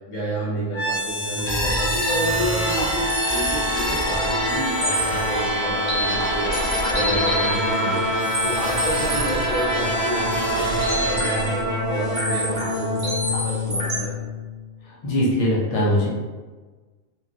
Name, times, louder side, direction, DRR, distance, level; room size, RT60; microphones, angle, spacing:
voice 1, 0.1-6.6 6.9-8.1 8.4-11.6 11.9-14.2, right 1 dB, 85° left, -7 dB, 1.1 m, -30 dB
sound 1, 0.7-14.6, equal, 65° left, 1.3 m, -24 dB
sound 2, 1.1-1.4 1.7-1.8 2.2-2.3 2.8-3.7 4.0-4.1 4.5-4.6 4.8-11.6 12.0-14.0, right 1 dB, 35° right, 0.7 m, -29 dB
voice 2, 15.0-16.1, equal, 45° left, -6 dB, 0.4 m, -20 dB
3.0 x 2.1 x 2.5 m, 1.3 s
omnidirectional pair, 1.3 m